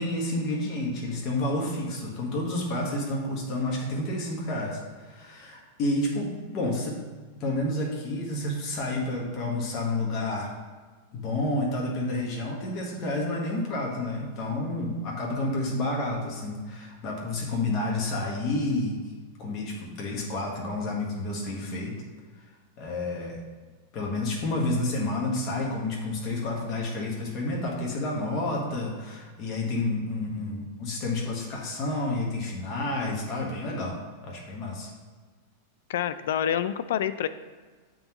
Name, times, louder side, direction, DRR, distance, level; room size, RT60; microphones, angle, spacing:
voice 1, 0.0-7.0 7.4-10.5 11.1-19.0 19.4-21.9 22.8-23.4 23.9-34.0 34.2-34.9, left 2 dB, 35° left, -2 dB, 1.2 m, -30 dB
voice 2, 35.9-37.3, left 10 dB, 75° left, 13 dB, 0.3 m, -27 dB
8.9 x 3.8 x 3.0 m, 1.4 s
supercardioid pair, 150°, 0 cm